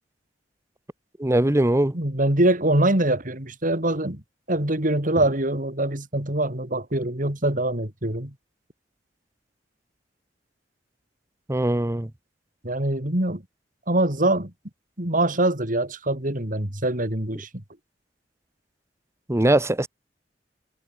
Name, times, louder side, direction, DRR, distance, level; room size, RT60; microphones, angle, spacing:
voice 1, 1.2-2.0 11.5-12.1 19.3-19.9, right 1 dB, 15° right, 0.9 m, -21 dB
voice 2, 1.9-4.2 4.5-8.3 12.6-13.4 13.9-14.5 15.0-17.6, right 1 dB, 50° right, 3.7 m, -24 dB
head